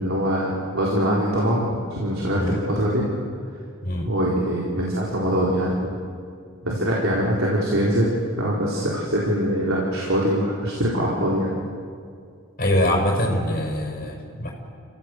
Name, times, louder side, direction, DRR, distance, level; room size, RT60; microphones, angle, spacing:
voice 1, 0.0-3.0 4.1-5.9 6.6-11.5, equal, 75° right, -5 dB, 4.3 m, -23 dB
voice 2, 12.6-14.5, left 1 dB, 45° left, -1 dB, 6.0 m, -23 dB
28.5 x 17.0 x 8.3 m, 2.2 s
head